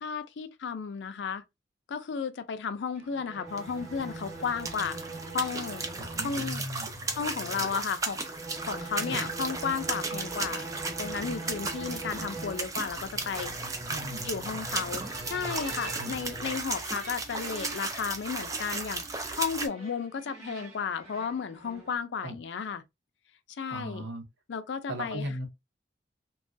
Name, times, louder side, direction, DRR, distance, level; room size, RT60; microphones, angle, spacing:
voice 1, 0.0-1.4 1.9-5.0 5.3-5.9 6.2-6.6 7.1-8.2 8.7-13.5 14.3-15.0 15.3-19.0 19.4-22.8 23.6-24.1 24.5-25.3, left 6 dB, 75° left, 0.4 m, -33 dB
sound 1, 3.0-22.0, right 2 dB, 35° right, 1.4 m, -42 dB
sound 2, 3.5-19.7, right 3 dB, 20° right, 0.4 m, -36 dB
voice 2, 6.0-6.9 9.1-9.2 13.9-14.3 16.0-16.2 22.2-22.4 23.7-24.2 24.9-25.5, right 1 dB, 80° right, 0.9 m, -37 dB
2.9 x 2.3 x 2.5 m
head